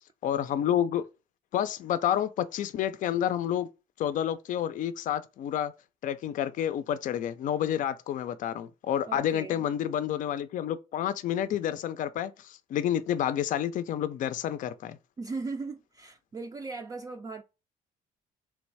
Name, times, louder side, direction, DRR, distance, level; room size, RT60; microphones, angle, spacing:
voice 1, 0.2-1.0 1.5-3.7 4.0-5.7 6.0-15.0, left 10 dB, 60° left, 0.5 m, -29 dB
voice 2, 9.1-9.7 15.2-17.4, right 3 dB, 25° right, 0.4 m, -38 dB
3.4 x 3.1 x 4.6 m
cardioid pair, 120°, 15 cm